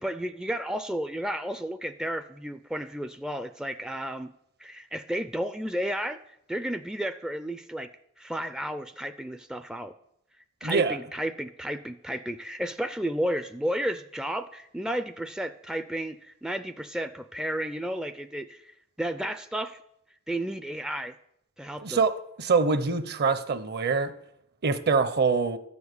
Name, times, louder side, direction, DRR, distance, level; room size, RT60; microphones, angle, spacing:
voice 1, 0.0-4.3 4.6-6.2 6.5-7.9 8.2-9.9 10.6-19.8 20.3-21.1 21.6-22.0, equal, 5° right, 9 dB, 0.4 m, -32 dB
voice 2, 10.6-11.0 21.8-24.1 24.6-25.6, right 4 dB, 50° right, 12 dB, 0.8 m, -24 dB
13.0 x 7.2 x 8.2 m, 0.76 s
head